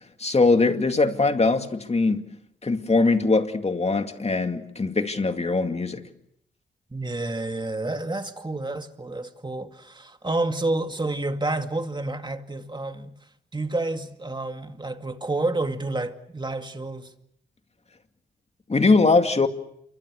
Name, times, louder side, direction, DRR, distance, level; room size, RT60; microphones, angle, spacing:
voice 1, 0.2-2.2 2.6-6.0 18.7-19.5, left 3 dB, 35° left, 2.4 m, -21 dB
voice 2, 6.9-13.1 13.5-17.1, right 2 dB, 25° right, 2.2 m, -29 dB
28.5 x 24.0 x 6.5 m
cardioid pair, 60°, 19 cm